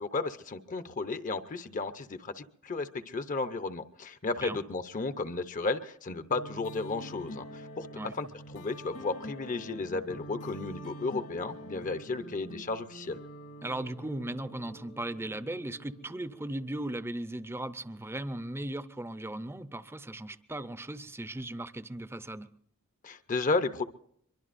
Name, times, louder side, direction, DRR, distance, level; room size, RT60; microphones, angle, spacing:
voice 1, 0.0-7.9 8.1-13.2 23.0-23.8, left 3 dB, 35° left, 11 dB, 0.7 m, -33 dB
sound 1, 6.3-16.9, right 1 dB, 80° left, 2.9 m, -46 dB
voice 2, 13.6-22.5, right 1 dB, 10° right, 13 dB, 0.6 m, -37 dB
23.5 x 23.0 x 2.6 m, 0.68 s
head